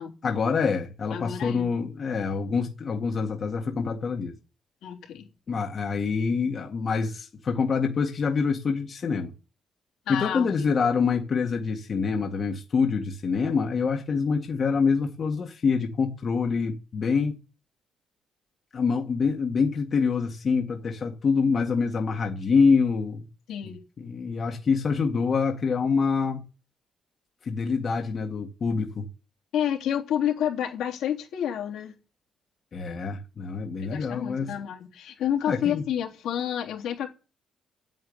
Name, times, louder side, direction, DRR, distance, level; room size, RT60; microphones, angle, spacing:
voice 1, 0.2-4.3 5.5-9.3 10.1-17.4 18.7-23.3 24.0-26.4 27.4-29.1 32.7-34.5 35.5-35.8, left 5 dB, 45° left, 2.0 m, -26 dB
voice 2, 1.1-1.7 4.8-5.3 10.1-10.7 23.5-23.8 29.5-31.9 33.8-37.1, left 10 dB, 80° left, 3.5 m, -29 dB
9.3 x 8.2 x 9.5 m
cardioid pair, 90°, 0 cm